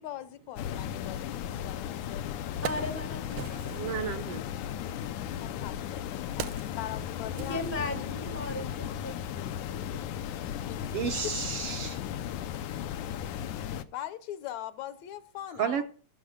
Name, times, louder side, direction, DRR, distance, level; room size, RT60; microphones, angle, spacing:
voice 1, 0.0-2.5 5.2-8.2 10.7-10.8 13.9-15.8, left 12 dB, 75° left, 2.0 m, -42 dB
sound 1, 0.6-13.8, left 10 dB, 90° left, 2.3 m, -36 dB
Wood, 1.8-1.9 2.3-4.0 4.9-8.3 8.6-8.7, right 12 dB, 90° right, 2.2 m, -41 dB
voice 2, 2.6-3.8 7.3-10.6, left 2 dB, 15° left, 0.5 m, -38 dB
voice 3, 3.7-4.4 10.9-12.0 15.6-15.8, right 7 dB, 65° right, 1.6 m, -32 dB
15.5 x 7.5 x 6.4 m
omnidirectional pair, 3.4 m